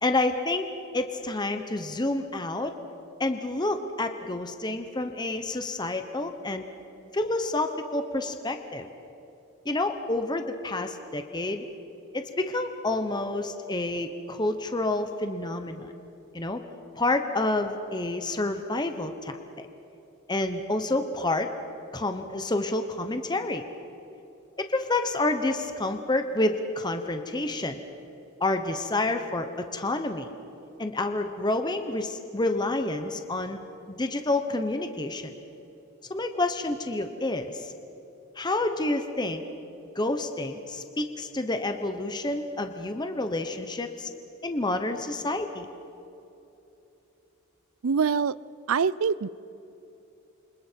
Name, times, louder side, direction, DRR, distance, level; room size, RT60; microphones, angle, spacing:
voice 1, 0.0-0.7 0.9-2.8 3.2-6.7 7.1-8.9 9.6-11.7 12.1-15.9 16.3-16.6 17.0-19.7 20.3-21.5 21.9-23.7 24.6-27.8 28.4-30.3 30.8-33.6 33.9-35.4 36.1-37.7 38.4-39.4 39.9-44.1 44.4-45.7, left 2 dB, 20° left, 7 dB, 1.0 m, -29 dB
voice 2, 47.8-48.4 48.7-49.3, right 6 dB, 65° right, 20 dB, 0.5 m, -24 dB
29.0 x 25.5 x 4.6 m, 2.9 s
head